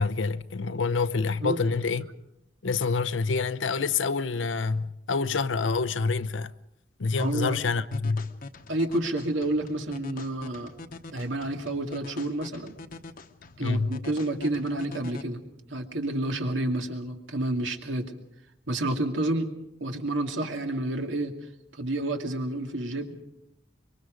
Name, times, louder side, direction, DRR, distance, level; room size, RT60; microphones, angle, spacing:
voice 1, 0.0-2.1 2.6-6.5 7.0-8.3 13.6-14.0, left 4 dB, 90° left, 0.7 m, -27 dB
sound 1, 7.2-15.2, left 3 dB, 50° left, 1.0 m, -45 dB
voice 2, 7.2-7.6 8.7-10.7 11.1-12.7 13.6-15.4 15.7-18.1 18.7-19.5 19.8-21.3 21.7-23.1, right 1 dB, 90° right, 2.3 m, -29 dB
25.0 x 23.0 x 5.2 m
head